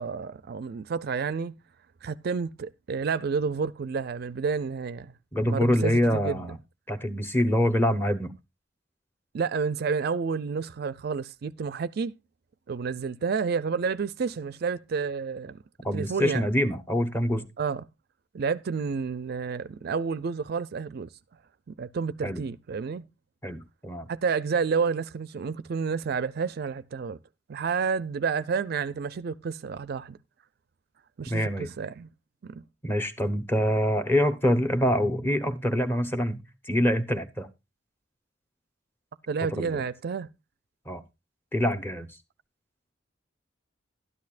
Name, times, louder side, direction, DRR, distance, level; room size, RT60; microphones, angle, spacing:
voice 1, 0.0-1.5 2.0-5.1 5.4-6.4 9.3-12.1 12.7-15.6 15.9-16.5 17.6-17.9 18.3-21.1 21.7-23.0 24.1-27.2 27.5-30.2 31.2-32.1 32.4-32.6 39.3-40.3, right 5 dB, 55° right, 0.4 m, -30 dB
voice 2, 5.3-6.6 6.9-8.3 15.8-17.4 22.2-22.4 23.4-24.1 31.3-31.7 32.8-37.5 39.6-39.8 40.9-41.0 41.5-42.1, equal, 10° left, 1.0 m, -25 dB
12.5 x 10.5 x 2.5 m
head